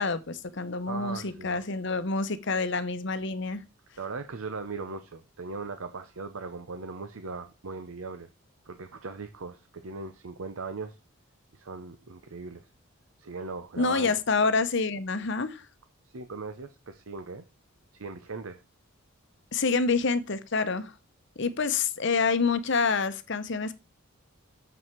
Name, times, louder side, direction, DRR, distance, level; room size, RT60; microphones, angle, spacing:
voice 1, 0.0-3.6 13.8-15.6 19.5-20.9 21.4-23.7, left 4 dB, 55° left, 0.8 m, -27 dB
voice 2, 0.9-1.6 4.0-8.3 8.6-11.0 11.5-12.7 13.2-14.2 16.1-17.4 17.9-18.6, right 4 dB, 75° right, 0.7 m, -39 dB
7.1 x 6.3 x 4.5 m
head